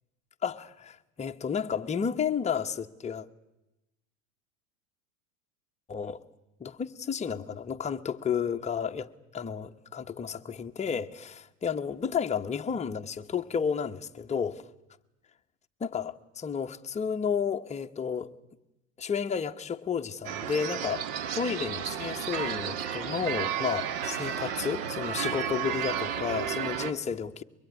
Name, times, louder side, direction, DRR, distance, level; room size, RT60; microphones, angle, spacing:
voice 1, 0.4-3.3 5.9-6.2 6.6-14.7 15.8-18.3 19.0-21.1 21.3-27.4, left 7 dB, 15° left, 1.0 m, -32 dB
sound 1, 20.2-26.9, right 9 dB, 60° right, 1.6 m, -32 dB
23.5 x 21.0 x 9.6 m
supercardioid pair, 125°, 40 cm